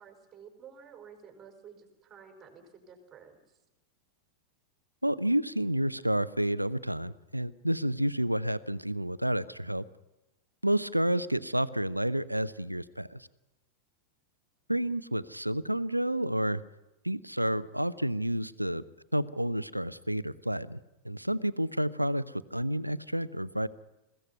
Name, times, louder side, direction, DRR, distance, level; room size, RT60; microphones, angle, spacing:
voice 1, 0.0-3.6, right 7 dB, 25° right, 4 dB, 4.7 m, -52 dB
voice 2, 5.0-9.8 10.6-13.3 14.7-16.6 17.0-18.8 19.1-20.8 21.0-23.7, right 1 dB, 90° right, 18 dB, 0.7 m, -30 dB
21.5 x 16.0 x 9.5 m, 0.95 s
figure-of-eight pair, 90°, 0 cm